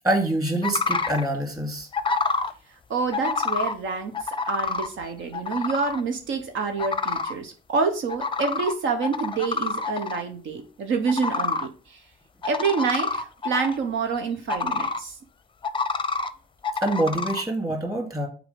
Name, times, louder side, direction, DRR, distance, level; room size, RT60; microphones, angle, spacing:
voice 1, 0.0-1.9 16.8-18.3, right 1 dB, 15° right, 2 dB, 2.4 m, -25 dB
sound 1, 0.6-1.3 1.9-2.5 3.1-3.7 4.1-4.9 5.3-6.0 6.8-7.3 8.1-8.7 9.0-10.2 11.1-11.7 12.4-13.8 14.5-15.0 15.6-16.3 16.6-17.4, left 4 dB, 25° left, 0.5 m, -27 dB
voice 2, 2.9-4.1 4.4-12.0 12.4-15.2, right 4 dB, 75° right, 5 dB, 1.0 m, -27 dB
5.9 x 4.1 x 5.1 m, 0.38 s
cardioid pair, 90°, 20 cm